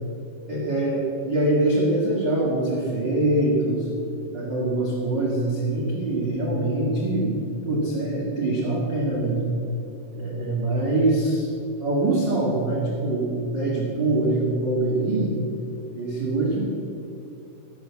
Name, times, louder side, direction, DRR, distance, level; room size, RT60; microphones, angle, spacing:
voice 1, 0.5-3.9 4.3-7.4 7.6-9.4 10.1-11.5 11.8-15.4 15.9-16.6, right 2 dB, 50° right, -4 dB, 1.4 m, -24 dB
16.0 x 8.0 x 7.2 m, 2.8 s
omnidirectional pair, 5.1 m